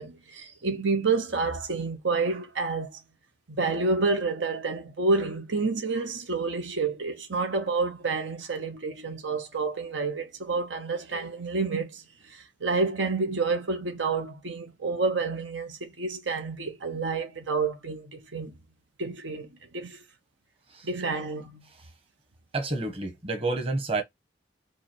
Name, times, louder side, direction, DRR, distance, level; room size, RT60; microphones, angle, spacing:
voice 1, 0.0-3.0 3.5-18.5 19.0-19.5 19.7-20.0 20.8-21.6, right 4 dB, 85° right, 1.0 m, -29 dB
voice 2, 22.5-24.0, right 2 dB, 30° right, 1.1 m, -29 dB
4.6 x 2.4 x 4.4 m
head